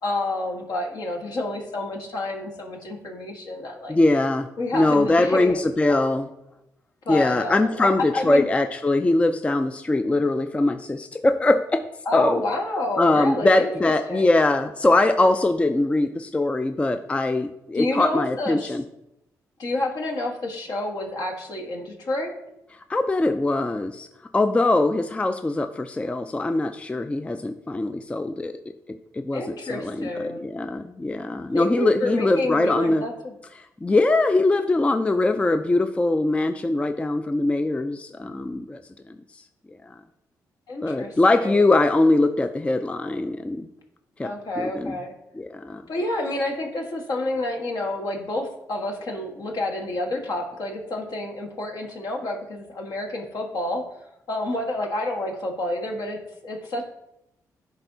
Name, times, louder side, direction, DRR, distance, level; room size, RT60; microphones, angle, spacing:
voice 1, 0.0-4.0 4.6-5.6 5.9-6.0 7.0-8.5 12.0-14.3 17.7-18.8 19.6-22.3 29.3-30.5 31.5-33.3 40.7-41.7 44.2-45.2 45.9-56.8, left 1 dB, 65° left, 0 dB, 1.3 m, -29 dB
voice 2, 3.9-6.3 7.1-11.8 12.1-12.4 13.0-18.8 22.9-24.1 24.3-28.6 28.9-33.0 33.8-38.8 39.9-40.0 40.8-43.7 44.2-44.9 45.4-45.8, left 2 dB, 15° left, 8 dB, 0.3 m, -22 dB
10.5 x 3.5 x 2.7 m, 0.85 s
supercardioid pair, 60°, 7 cm